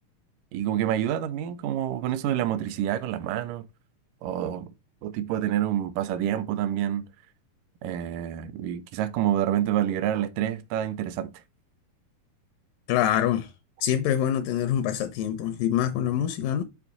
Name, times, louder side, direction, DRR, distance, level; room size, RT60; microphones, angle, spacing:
voice 1, 0.5-3.6 4.2-4.7 5.0-7.0 7.8-11.3, right 11 dB, 80° right, 2.1 m, -27 dB
voice 2, 12.9-13.5 13.8-16.6, left 10 dB, 80° left, 2.2 m, -25 dB
6.2 x 3.3 x 5.8 m
omnidirectional pair, 4.0 m